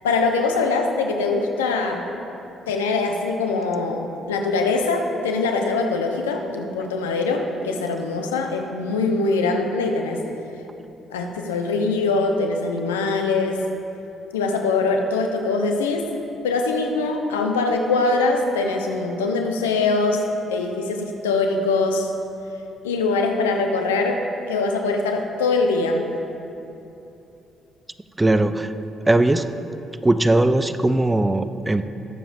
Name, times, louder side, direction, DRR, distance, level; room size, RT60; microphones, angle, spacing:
voice 1, 0.0-2.1 2.7-10.2 11.1-13.6 14.3-16.1 16.4-22.1 22.8-26.1, left 3 dB, 85° left, 3 dB, 0.7 m, -23 dB
voice 2, 28.2-28.7 29.1-29.6 30.0-31.9, right 2 dB, 15° right, 11 dB, 0.5 m, -19 dB
20.5 x 6.9 x 2.6 m, 2.9 s
hypercardioid pair, 45°, 0 cm